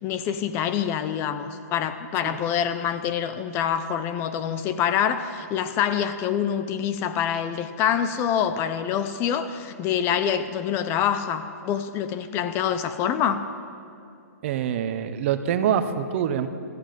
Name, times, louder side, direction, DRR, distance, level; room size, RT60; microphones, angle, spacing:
voice 1, 0.0-13.4, left 9 dB, 25° left, 11 dB, 0.6 m, -26 dB
voice 2, 14.4-16.5, right 9 dB, 45° right, 10 dB, 0.8 m, -25 dB
15.0 x 14.5 x 5.3 m, 2.5 s
hypercardioid pair, 145°, 9 cm